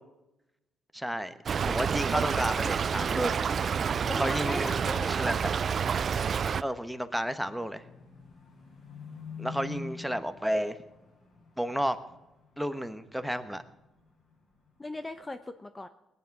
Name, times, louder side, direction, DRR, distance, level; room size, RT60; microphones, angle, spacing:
voice 1, 0.9-1.3 1.7-3.3 4.1-4.8 5.1-5.4 6.6-7.8 9.4-10.8 11.6-12.0 12.6-13.6, equal, ahead, 10 dB, 1.1 m, -31 dB
Stream / Trickle dribble, 1.5-6.6, right 6 dB, 50° right, 0.4 m, -28 dB
voice 2, 4.1-5.2 14.8-15.9, left 2 dB, 20° left, 10 dB, 0.7 m, -38 dB
sound 1, 7.2-14.3 14.7-15.2, left 4 dB, 55° left, 6.4 m, -46 dB
20.0 x 9.3 x 6.0 m, 0.96 s
cardioid pair, 90°, 0 cm